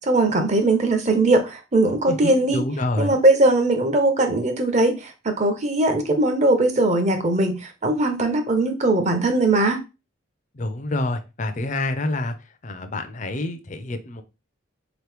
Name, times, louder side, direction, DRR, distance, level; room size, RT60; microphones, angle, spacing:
voice 1, 0.0-2.6 3.0-9.8, right 2 dB, 35° right, 0.7 m, -20 dB
voice 2, 2.1-3.2 10.5-12.3 12.6-14.2, left 2 dB, 35° left, 0.5 m, -27 dB
4.1 x 3.0 x 3.3 m
head